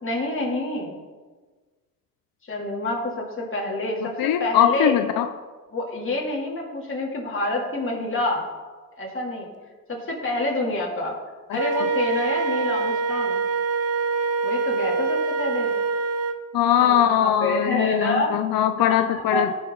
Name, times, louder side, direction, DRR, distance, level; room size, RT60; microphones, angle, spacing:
voice 1, 0.0-0.9 2.5-4.9 5.7-8.4 9.0-9.5 9.9-11.2 11.5-13.4 14.4-15.7 16.8-18.3 19.1-19.5, left 2 dB, 35° left, -2 dB, 2.9 m, -27 dB
voice 2, 4.0-5.3 11.5-11.9 16.5-19.5, left 10 dB, 90° left, 8 dB, 0.6 m, -21 dB
Wind instrument woodwind instrument, 11.5-16.4, right 4 dB, 45° right, 0.9 m, -25 dB
16.0 x 6.1 x 3.8 m, 1.4 s
cardioid pair, 95°, 34 cm